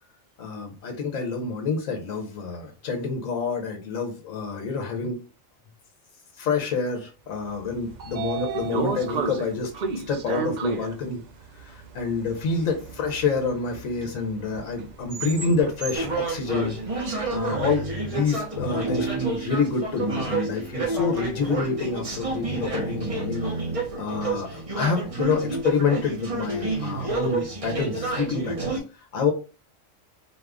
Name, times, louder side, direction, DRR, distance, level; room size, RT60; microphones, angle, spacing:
voice 1, 0.4-5.2 6.4-11.2 11.6-16.8 17.3-23.5 24.0-29.3, left 4 dB, 85° left, 2 dB, 1.2 m, -27 dB
Train / Sliding door, 7.6-17.7, right 4 dB, 65° right, 0.4 m, -33 dB
sound 1, 15.9-28.8, right 3 dB, 30° right, 0.9 m, -29 dB
4.4 x 2.4 x 3.4 m, 0.34 s
omnidirectional pair, 1.4 m